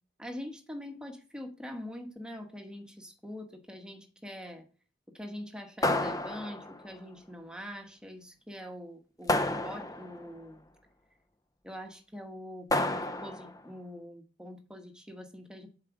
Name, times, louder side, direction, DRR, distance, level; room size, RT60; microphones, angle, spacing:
voice 1, 0.2-4.7 5.1-10.7 11.6-15.7, equal, 5° right, 4 dB, 1.2 m, -44 dB
sound 1, 5.8-6.9 9.3-10.3 12.7-13.6, left 2 dB, 20° left, 0.5 m, -30 dB
11.0 x 4.8 x 6.0 m, 0.38 s
head